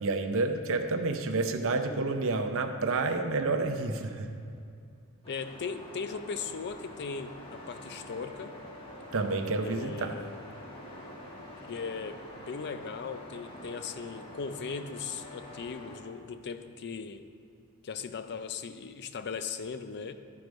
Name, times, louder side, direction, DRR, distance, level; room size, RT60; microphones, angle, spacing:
voice 1, 0.0-4.3 9.1-10.3, right 3 dB, 65° right, 7 dB, 0.7 m, -29 dB
sound 1, 5.2-16.0, left 1 dB, 25° left, 1.3 m, -46 dB
voice 2, 5.3-8.5 9.6-10.4 11.7-17.3 17.8-20.1, left 5 dB, 50° left, 10 dB, 0.5 m, -38 dB
12.0 x 4.8 x 5.2 m, 2.3 s
head